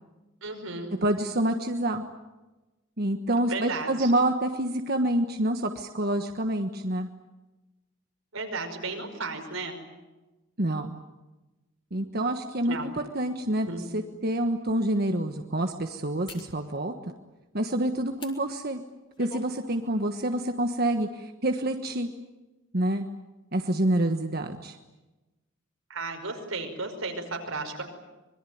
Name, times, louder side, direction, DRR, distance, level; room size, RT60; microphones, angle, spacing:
voice 1, 0.4-0.9 3.5-4.1 8.3-9.8 12.7-12.9 13.7-13.8 25.9-27.8, right 3 dB, 85° right, 4 dB, 5.4 m, -34 dB
voice 2, 1.0-2.0 3.0-7.1 10.6-10.9 11.9-13.7 13.9-17.1 17.5-18.8 19.2-22.1 22.7-23.1 23.5-24.8, right 1 dB, 50° right, 5 dB, 1.4 m, -27 dB
sound 1, 13.4-13.5 14.2-14.3 16.3-16.5 18.1-18.4 18.9-19.5 19.9-20.1, left 4 dB, 25° left, 3.0 m, -44 dB
25.5 x 22.0 x 9.4 m, 1.1 s
head